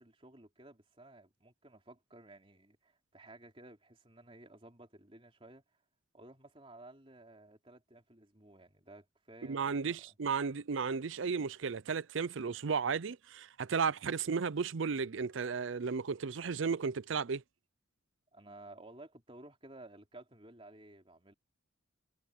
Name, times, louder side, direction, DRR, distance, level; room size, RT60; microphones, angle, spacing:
voice 1, 0.0-5.6 6.1-10.1 18.3-21.3, right 2 dB, 25° right, 3.5 m, -55 dB
voice 2, 9.5-17.4, right 5 dB, 70° right, 0.5 m, -34 dB
head